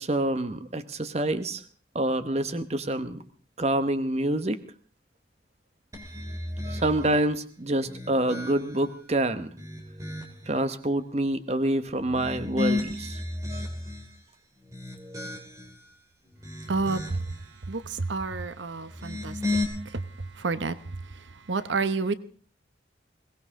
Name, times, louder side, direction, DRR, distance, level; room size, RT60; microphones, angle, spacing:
voice 1, 0.0-1.6 1.9-3.2 3.6-4.6 6.7-9.5 10.5-13.2, right 1 dB, 35° right, 0.9 m, -27 dB
sound 1, 5.9-7.2 7.8-8.9 9.4-10.5 12.0-14.1 14.6-15.8 16.3-17.4 18.8-19.6, left 2 dB, 15° right, 2.9 m, -34 dB
voice 2, 16.7-17.2 17.7-19.4 19.8-20.0 20.4-20.8 21.5-22.1, right 3 dB, 80° right, 0.9 m, -29 dB
22.0 x 18.0 x 3.7 m
head